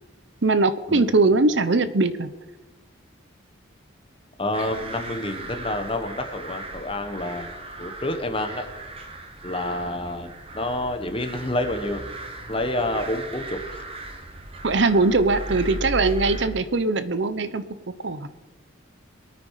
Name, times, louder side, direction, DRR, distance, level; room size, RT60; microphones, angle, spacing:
voice 1, 0.4-2.3 14.6-18.3, right 3 dB, 60° right, 13 dB, 0.8 m, -21 dB
voice 2, 4.4-7.5 7.8-8.7 9.4-12.0 12.5-13.8, left 1 dB, 25° left, 7 dB, 1.3 m, -28 dB
sound 1, 4.5-16.5, right 2 dB, 30° right, 1.4 m, -37 dB
23.0 x 9.4 x 4.8 m, 1.1 s
head